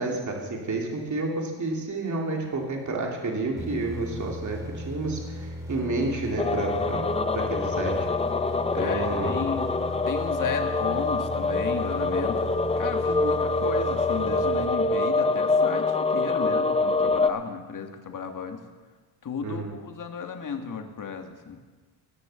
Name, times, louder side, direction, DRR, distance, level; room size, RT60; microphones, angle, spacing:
voice 1, 0.0-7.1 7.3-8.0 8.8-9.3 19.4-19.7, right 2 dB, 35° right, 0 dB, 2.6 m, -30 dB
sound 1, 3.6-15.3, equal, 5° right, 2.5 m, -37 dB
sound 2, 6.4-17.3, left 3 dB, 15° left, 0.5 m, -25 dB
voice 2, 8.7-9.7 10.0-12.5 12.8-18.6 19.2-21.6, left 6 dB, 40° left, 5 dB, 1.6 m, -34 dB
19.0 x 6.7 x 6.9 m, 1.4 s
cardioid pair, 100°, 49 cm